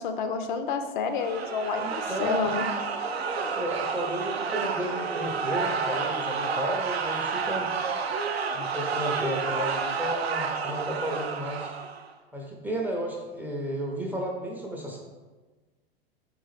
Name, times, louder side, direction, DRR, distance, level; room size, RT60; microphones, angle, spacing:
voice 1, 0.0-2.6, left 5 dB, 55° left, 7 dB, 0.4 m, -29 dB
sound 1, 1.1-12.1, right 5 dB, 85° right, 0.5 m, -30 dB
voice 2, 1.8-2.5 3.5-7.7 8.5-11.8 12.3-15.0, equal, 5° right, -1 dB, 0.4 m, -33 dB
3.8 x 3.5 x 3.3 m, 1.3 s
figure-of-eight pair, 95°, 31 cm